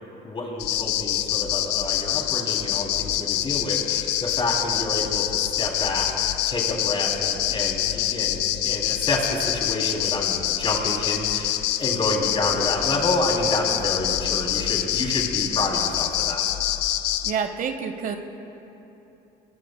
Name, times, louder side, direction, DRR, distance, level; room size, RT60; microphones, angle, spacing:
voice 1, 0.2-6.1 6.5-16.4, left 2 dB, 30° left, -1 dB, 3.1 m, -28 dB
sound 1, 0.6-17.3, left 13 dB, 85° left, 0.6 m, -25 dB
voice 2, 17.2-18.2, right 6 dB, 55° right, 7 dB, 1.0 m, -28 dB
24.0 x 19.5 x 2.3 m, 2.9 s
cardioid pair, 110°, 17 cm